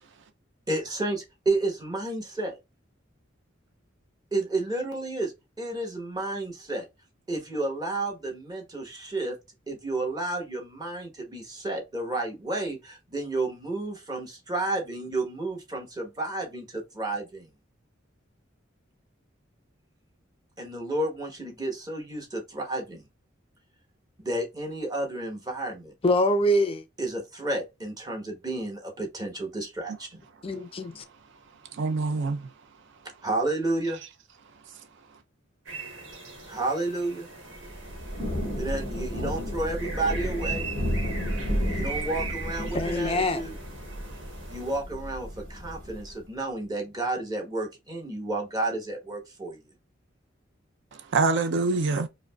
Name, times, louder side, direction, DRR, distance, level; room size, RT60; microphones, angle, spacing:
voice 1, 0.7-2.6 4.3-6.9 7.3-9.4 9.7-17.5 20.6-23.0 24.2-25.9 27.0-30.2 33.2-34.0 36.5-37.3 38.5-40.7 41.7-43.5 44.5-49.6, right 2 dB, 20° right, 1.1 m, -31 dB
voice 2, 26.0-26.8 30.4-31.0 42.7-43.4, left 1 dB, 30° left, 0.4 m, -24 dB
voice 3, 31.7-32.5 50.9-52.1, right 3 dB, 65° right, 0.5 m, -25 dB
sound 1, 35.7-44.8, right 4 dB, 85° right, 1.1 m, -40 dB
Thunder / Rain, 37.6-46.2, equal, 50° right, 1.8 m, -32 dB
4.8 x 2.1 x 2.2 m
head